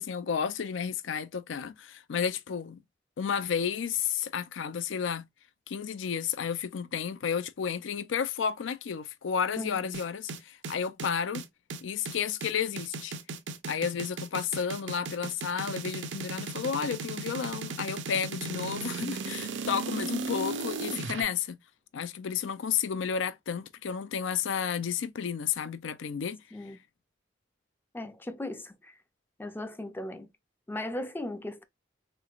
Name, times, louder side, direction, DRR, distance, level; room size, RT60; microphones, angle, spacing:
voice 1, 0.0-2.8 3.2-5.2 5.7-11.4 11.8-13.1 13.6-21.6 21.9-26.4 26.7-26.8, left 7 dB, 85° left, 0.4 m, -32 dB
sound 1, 9.9-21.2, right 3 dB, 75° right, 0.6 m, -36 dB
voice 2, 27.9-28.9 29.4-30.3 30.7-31.6, left 1 dB, 10° left, 0.4 m, -37 dB
3.9 x 3.1 x 2.4 m
head